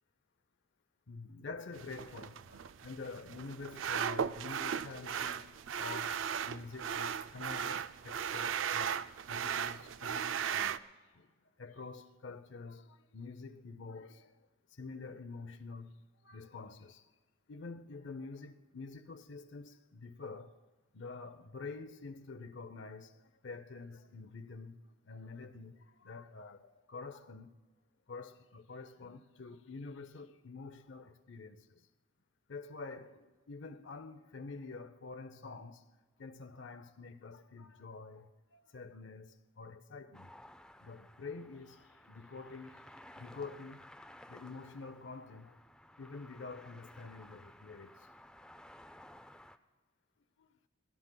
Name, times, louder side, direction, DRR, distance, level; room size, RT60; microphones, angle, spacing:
voice 1, 1.1-5.5 5.8-6.1 6.4-10.8 11.1-11.3 11.6-15.9 16.2-17.1 17.5-20.6 20.9-24.8 25.0-27.5 28.1-31.9 32.5-35.8 36.2-40.3 40.8-43.8 44.3-45.6 46.0-48.1 50.4-50.5, left 4 dB, 65° left, 0.6 m, -47 dB
sound 1, 1.7-10.8, right 8 dB, 80° right, 0.4 m, -37 dB
sound 2, 40.1-49.6, left 1 dB, 5° left, 0.4 m, -56 dB
25.0 x 16.5 x 2.2 m
head